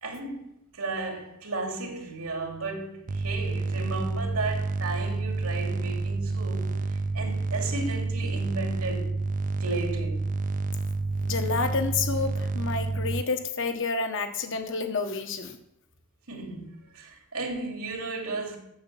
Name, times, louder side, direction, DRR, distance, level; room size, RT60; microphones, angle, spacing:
voice 1, 0.0-9.1 9.6-10.3 16.3-18.6, right 3 dB, 90° right, 2.6 m, -34 dB
sound 1, 3.1-13.2, right 3 dB, 35° right, 0.4 m, -29 dB
voice 2, 11.2-15.6, left 4 dB, 60° left, 1.3 m, -29 dB
8.7 x 7.1 x 7.2 m
head